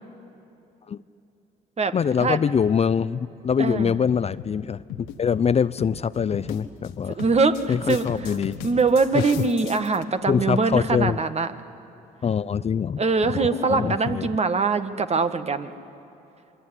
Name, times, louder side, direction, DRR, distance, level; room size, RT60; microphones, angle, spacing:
voice 1, 1.9-7.2 7.7-8.6 9.1-9.5 10.3-11.2 12.2-14.3, left 7 dB, 35° left, 16 dB, 0.5 m, -24 dB
voice 2, 3.6-3.9 7.1-8.3 8.6-11.5 13.0-15.7, right 4 dB, 35° right, 10 dB, 1.7 m, -23 dB
sound 1, 3.7-3.8 4.4-4.6 4.9-5.2 5.8-6.0 6.3-6.9 7.2-10.0, left 8 dB, 85° left, 1.5 m, -37 dB
27.0 x 22.0 x 9.8 m, 2.9 s
supercardioid pair, 65°, 18 cm